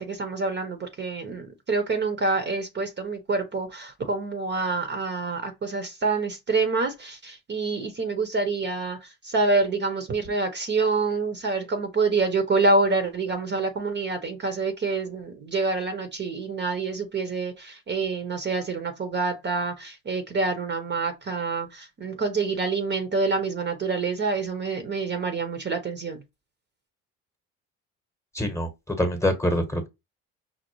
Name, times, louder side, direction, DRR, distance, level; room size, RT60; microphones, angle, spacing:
voice 1, 0.0-9.0 9.2-26.2, right 3 dB, 35° right, 0.8 m, -27 dB
voice 2, 28.3-28.7 29.0-29.9, left 1 dB, 10° left, 1.0 m, -24 dB
5.3 x 2.0 x 3.0 m
supercardioid pair, 80°, 33 cm